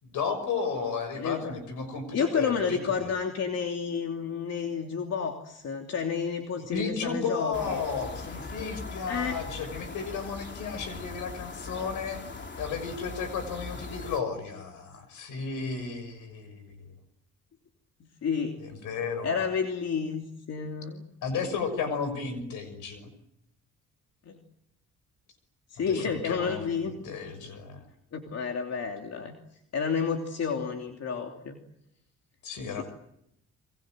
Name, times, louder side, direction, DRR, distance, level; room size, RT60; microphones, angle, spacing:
voice 1, 0.0-3.1 6.7-12.2 12.6-16.8 18.6-19.4 21.2-23.1 25.8-27.8 32.4-32.8, left 5 dB, 85° left, 11 dB, 6.3 m, -34 dB
voice 2, 1.2-1.5 2.1-7.8 9.1-9.4 18.2-18.6 19.2-21.0 24.3-24.4 25.7-27.2 28.1-29.3 29.7-31.6, left 6 dB, 55° left, 3 dB, 3.0 m, -30 dB
sound 1, 7.5-14.2, left 3 dB, 40° left, 3.1 m, -40 dB
29.5 x 24.0 x 7.8 m, 0.79 s
cardioid pair, 90°, 30 cm